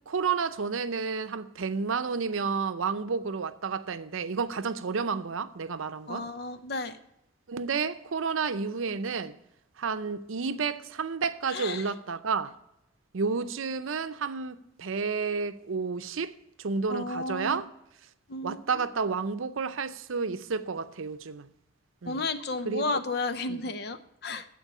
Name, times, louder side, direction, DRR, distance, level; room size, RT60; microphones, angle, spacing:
voice 1, 0.1-6.3 7.5-9.3 9.8-12.6 13.1-16.3 16.6-17.7 18.4-21.5 22.0-22.2 22.7-22.8 23.5-23.6, right 5 dB, 90° right, 0.6 m, -31 dB
voice 2, 6.1-6.9 11.5-11.8 16.9-17.6 18.3-18.6 22.0-24.5, left 3 dB, 50° left, 0.6 m, -32 dB
13.5 x 4.6 x 8.3 m
head